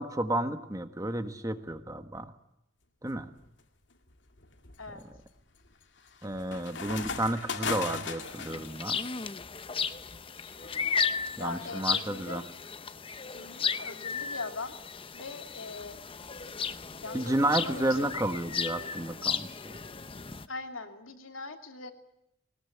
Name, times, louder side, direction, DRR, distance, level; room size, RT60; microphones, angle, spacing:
voice 1, 0.0-2.3 3.0-3.3 6.2-9.0 11.4-12.4 17.1-19.8, right 1 dB, 15° right, 9 dB, 1.4 m, -31 dB
sound 1, 3.1-3.5 4.1-8.7, left 5 dB, 65° left, 2.2 m, -37 dB
sound 2, 8.2-20.5, left 6 dB, 25° left, 0.8 m, -35 dB
voice 2, 11.4-12.4 13.3-14.7 15.1-16.0 17.0-18.2 20.5-21.9, left 3 dB, 85° left, 6 dB, 2.7 m, -41 dB
21.0 x 19.5 x 9.9 m, 0.84 s
head